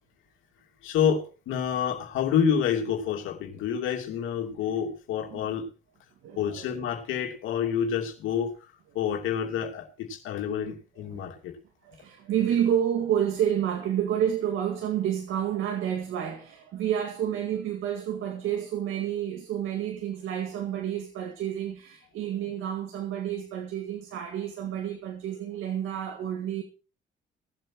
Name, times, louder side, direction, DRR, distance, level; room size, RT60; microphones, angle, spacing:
voice 1, 0.8-5.7 6.4-8.5 8.9-11.5, left 8 dB, 90° left, 2.8 m, -28 dB
voice 2, 6.2-6.8 7.6-7.7 11.0-11.3 11.8-26.6, right 10 dB, 85° right, 2.1 m, -29 dB
17.5 x 8.0 x 4.7 m
cardioid pair, 90°, 20 cm